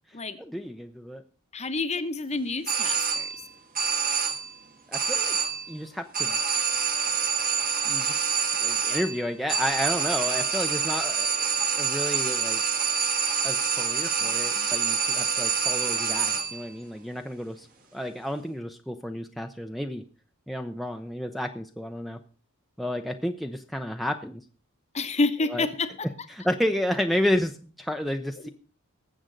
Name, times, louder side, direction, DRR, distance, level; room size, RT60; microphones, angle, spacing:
voice 1, 0.4-1.2 4.9-5.4 5.7-6.4 7.8-8.2 8.6-11.3 11.7-12.6 13.4-17.7 17.9-20.0 20.5-22.2 22.8-24.4 25.5-25.7 26.3-28.5, equal, ahead, 4 dB, 0.6 m, -31 dB
voice 2, 1.5-3.3 24.9-26.1 28.4-28.5, left 3 dB, 30° left, 10 dB, 0.9 m, -28 dB
sound 1, 2.7-3.5 3.7-4.6 4.9-5.8 6.1-16.7, right 6 dB, 45° right, 1.6 m, -26 dB
19.0 x 7.7 x 3.9 m, 0.37 s
head